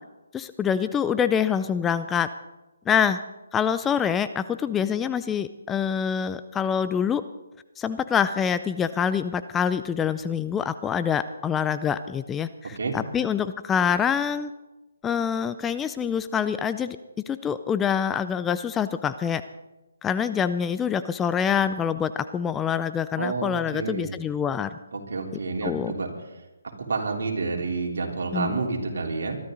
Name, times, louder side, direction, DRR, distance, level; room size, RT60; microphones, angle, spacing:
voice 1, 0.3-2.3 2.9-3.2 3.5-7.2 7.8-14.5 15.0-17.0 17.3-19.4 20.0-24.7 25.6-25.9 28.3-28.6, left 7 dB, 10° left, 12 dB, 0.4 m, -25 dB
voice 2, 23.2-24.2 24.9-26.1 26.9-29.4, right 4 dB, 70° right, 0 dB, 3.7 m, -29 dB
23.0 x 12.5 x 3.9 m, 1.1 s
hypercardioid pair, 155°, 0 cm